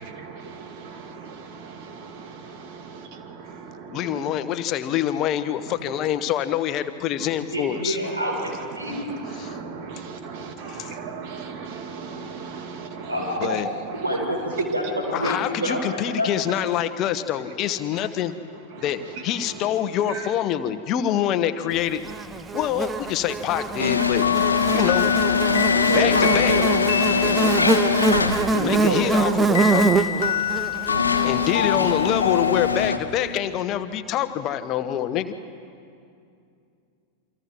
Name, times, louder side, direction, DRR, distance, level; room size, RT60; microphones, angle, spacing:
voice 1, 0.0-4.7 5.7-6.0 7.2-7.3 7.7-15.6 16.6-16.7 17.3-18.3 18.7-20.3, right 5 dB, 45° right, 5 dB, 2.5 m, -38 dB
voice 2, 3.9-8.0 9.4-9.5 10.8-10.9 13.4-13.7 15.1-18.3 18.8-22.0 22.5-24.2 24.7-25.1 25.9-26.6 28.6-29.9 31.2-35.4, left 11 dB, 35° left, 12 dB, 1.1 m, -25 dB
voice 3, 7.5-9.1 13.1-13.6 14.0-14.4 14.7-15.8 16.1-16.3 25.7-26.6 27.1-27.4 28.4-29.3, right 1 dB, 80° right, 0 dB, 5.7 m, -27 dB
Buzz, 22.1-32.5, right 3 dB, 15° right, 0.9 m, -25 dB
sound 1, 23.8-28.8 29.7-29.8 30.5-33.0, left 5 dB, 80° left, 1.3 m, -23 dB
sound 2, 24.2-28.0 29.5-33.3, left 10 dB, 65° left, 0.5 m, -27 dB
28.0 x 25.0 x 4.7 m, 2.5 s
figure-of-eight pair, 90°, 0 cm